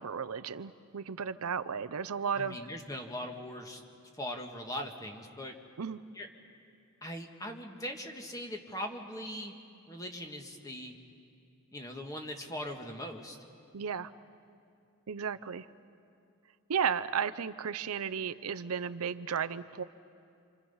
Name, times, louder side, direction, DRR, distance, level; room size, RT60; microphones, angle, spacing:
voice 1, 0.0-2.6 5.8-6.0 13.7-14.1 15.1-15.7 16.7-19.8, right 7 dB, 90° right, 12 dB, 0.6 m, -34 dB
voice 2, 2.3-3.8 4.1-5.5 6.2-6.3 7.0-9.5 9.9-10.9 11.7-13.4, equal, 15° left, 3 dB, 1.6 m, -40 dB
28.0 x 27.0 x 5.6 m, 2.6 s
head